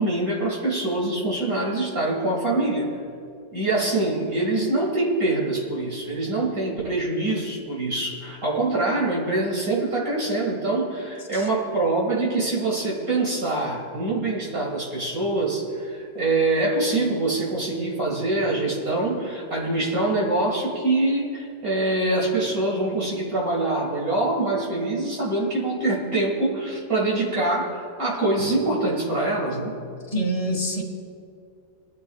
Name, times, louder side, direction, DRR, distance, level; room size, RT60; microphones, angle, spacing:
voice 1, 0.0-2.9 3.5-29.7, right 2 dB, 50° right, -3 dB, 2.5 m, -24 dB
voice 2, 30.1-30.8, right 1 dB, 20° left, 1 dB, 1.6 m, -26 dB
21.5 x 12.0 x 2.4 m, 2.3 s
omnidirectional pair, 1.9 m